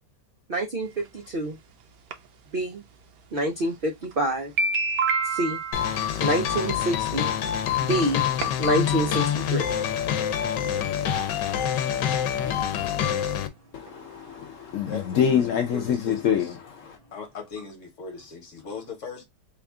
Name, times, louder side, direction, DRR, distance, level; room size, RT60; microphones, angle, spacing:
voice 1, 0.5-1.6 2.5-2.8 3.3-4.5 5.3-5.6 6.2-7.3 7.8-8.2 8.6-9.6 12.4-12.7, right 1 dB, 80° right, 0.4 m, -27 dB
sound 1, 1.0-1.1 2.1-2.2 3.4-3.5 4.0-4.1 4.4-6.4 7.5-7.6 8.0-8.1 8.4-8.8 9.1-9.2 9.4-9.5 9.8-10.0, right 4 dB, 65° right, 1.1 m, -27 dB
sound 2, 5.7-13.5, left 9 dB, 85° left, 1.2 m, -26 dB
voice 2, 13.7-17.0, left 8 dB, 70° left, 0.8 m, -26 dB
voice 3, 14.9-16.6 17.1-19.2, left 4 dB, 50° left, 1.3 m, -39 dB
3.5 x 2.4 x 3.5 m
omnidirectional pair, 1.9 m